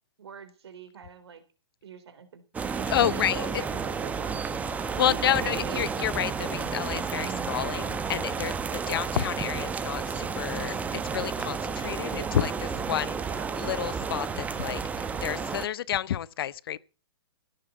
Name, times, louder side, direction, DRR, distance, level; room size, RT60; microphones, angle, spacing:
voice 1, 0.2-1.4 1.8-2.4 2.7-5.8 8.9-9.0 12.1-12.5 13.3-13.6, right 6 dB, 65° right, 3.8 m, -43 dB
sound 1, 2.5-15.7, right 5 dB, 10° right, 1.0 m, -31 dB
voice 2, 2.9-3.6 4.8-10.8 11.0-12.5 12.9-14.8 15.2-16.8, left 11 dB, 55° left, 0.8 m, -30 dB
16.5 x 7.3 x 8.0 m
hypercardioid pair, 135°, 15 cm